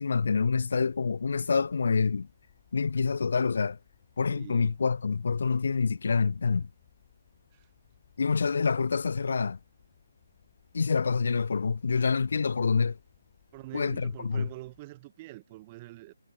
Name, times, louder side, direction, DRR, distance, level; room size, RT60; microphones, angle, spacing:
voice 1, 0.0-2.3 2.7-3.8 4.2-6.7 8.2-9.6 10.7-13.0 13.7-14.5, left 5 dB, 55° left, 0.5 m, -27 dB
sound 1, 0.8-14.8, left 13 dB, 30° left, 6.7 m, -64 dB
voice 2, 4.3-4.7 7.5-7.7 13.5-16.1, right 19 dB, 25° right, 3.2 m, -45 dB
figure-of-eight pair, 145°, 0 cm